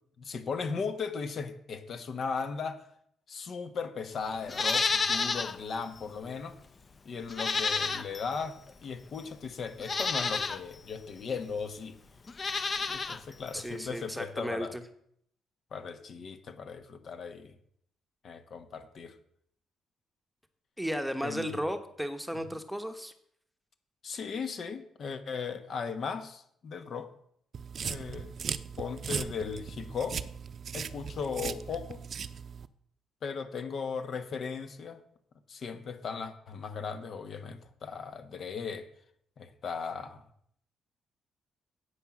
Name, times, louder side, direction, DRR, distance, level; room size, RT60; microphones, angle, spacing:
voice 1, 0.2-2.8 3.3-6.6 7.0-12.0 12.8-14.7 15.7-17.5 18.2-19.1 21.2-21.6 24.0-27.1 27.8-28.3 28.8-30.2 30.7-32.0 33.2-35.0 35.5-38.9 39.4-40.2, left 5 dB, 55° left, 9 dB, 1.2 m, -37 dB
Livestock farm animals working animals, 4.5-5.6 6.0-6.1 7.3-8.3 9.2-9.3 9.8-10.6 12.3-13.2 13.5-13.6, left 4 dB, 35° left, 0.9 m, -30 dB
voice 2, 13.5-14.8 20.8-23.1, equal, ahead, 7 dB, 1.1 m, -34 dB
sound 1, 27.5-32.7, right 6 dB, 50° right, 0.6 m, -38 dB
9.9 x 8.1 x 6.1 m, 0.69 s
cardioid pair, 90°, 0 cm